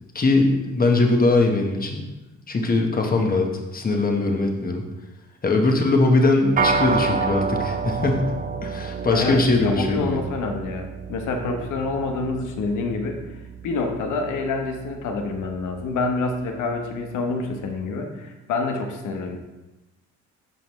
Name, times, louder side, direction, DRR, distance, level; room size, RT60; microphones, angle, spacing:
voice 1, 0.1-2.0 2.5-4.8 5.4-8.3 8.6-10.2, left 2 dB, 30° left, 2 dB, 1.1 m, -21 dB
sound 1, 6.6-16.1, right 5 dB, 30° right, 0.4 m, -30 dB
voice 2, 9.1-13.4 13.6-19.4, left 3 dB, 85° left, 4 dB, 1.0 m, -27 dB
7.5 x 5.2 x 3.1 m, 1.1 s
cardioid pair, 90°, 30 cm